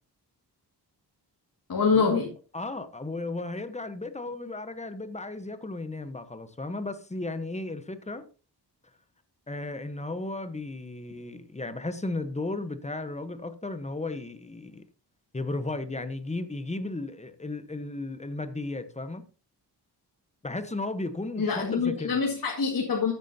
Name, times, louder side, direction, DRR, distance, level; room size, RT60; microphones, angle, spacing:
voice 1, 1.7-2.3 21.4-23.1, left 5 dB, 55° left, 2.2 m, -25 dB
voice 2, 2.5-8.2 9.5-14.8 15.3-19.2 20.4-22.2, left 2 dB, 15° left, 1.1 m, -35 dB
13.5 x 9.1 x 2.8 m
wide cardioid pair, 90°, 41 cm